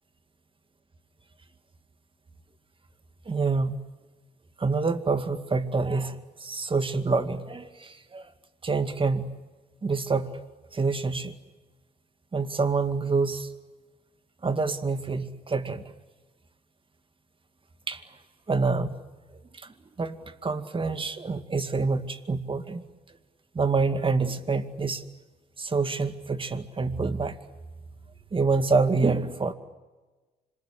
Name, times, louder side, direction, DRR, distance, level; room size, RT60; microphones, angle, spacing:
voice 1, 3.3-3.8 4.6-8.3 8.6-9.3 9.8-10.4 10.7-11.3 12.3-13.5 14.4-15.8 17.9-18.0 18.5-19.0 19.5-22.9 23.5-25.0 25.6-27.4 28.3-29.5, right 4 dB, 30° right, 9 dB, 2.2 m, -27 dB
26.5 x 21.5 x 9.8 m, 1.3 s
supercardioid pair, 70°, 17 cm